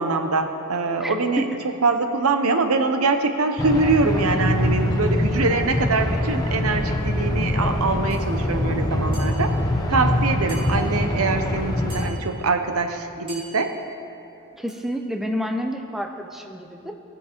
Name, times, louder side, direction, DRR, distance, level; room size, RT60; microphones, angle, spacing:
voice 1, 0.0-1.5 1.8-9.5 9.9-13.7, right 3 dB, 85° right, 7 dB, 0.8 m, -23 dB
voice 2, 1.0-1.6 14.6-16.9, equal, ahead, 3 dB, 0.6 m, -29 dB
sound 1, 3.6-12.1, left 1 dB, 20° left, 0.9 m, -23 dB
sound 2, 8.1-8.3 9.1-9.7 10.5-11.1 11.9-12.5 13.3-13.9 14.7-15.0, right 1 dB, 25° right, 2.8 m, -44 dB
19.0 x 6.7 x 4.5 m, 2.6 s
head